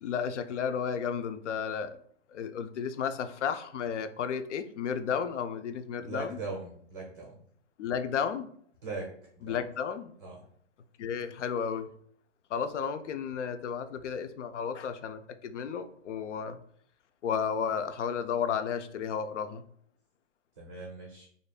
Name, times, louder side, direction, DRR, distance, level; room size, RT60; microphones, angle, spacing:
voice 1, 0.0-2.0 2.3-6.4 7.8-8.5 9.4-10.1 11.0-11.9 12.5-16.6 17.2-19.6, left 7 dB, 80° left, 10 dB, 0.5 m, -33 dB
voice 2, 6.0-7.4 8.8-9.1 9.4-9.6 10.2-10.4 20.6-21.3, right 3 dB, 25° right, -2 dB, 0.5 m, -39 dB
5.0 x 2.6 x 2.3 m, 0.62 s
hypercardioid pair, 175°, 35 cm